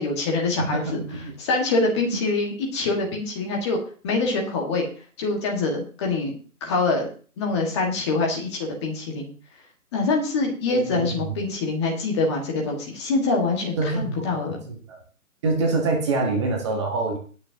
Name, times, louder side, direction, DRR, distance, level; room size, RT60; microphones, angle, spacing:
voice 1, 0.0-1.0 1.4-3.8 4.0-4.9 5.2-7.1 7.4-9.3 9.9-14.6, left 3 dB, 20° left, 0 dB, 1.8 m, -25 dB
voice 2, 0.6-1.3 10.7-11.4 13.8-14.2 14.7-15.0 15.4-17.2, right 3 dB, 20° right, 1 dB, 1.4 m, -25 dB
20.0 x 6.7 x 2.9 m, 0.40 s
figure-of-eight pair, 155°, 44 cm